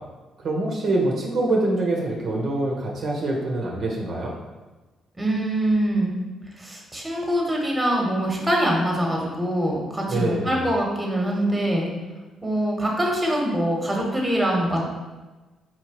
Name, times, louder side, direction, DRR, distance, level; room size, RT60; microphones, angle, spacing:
voice 1, 0.4-4.3 10.1-10.6, right 2 dB, 60° right, -1 dB, 0.7 m, -25 dB
voice 2, 5.2-6.1 6.6-11.9 12.4-14.8, right 1 dB, 10° right, -1 dB, 1.0 m, -24 dB
4.2 x 2.9 x 2.9 m, 1.2 s
cardioid pair, 90°, 0 cm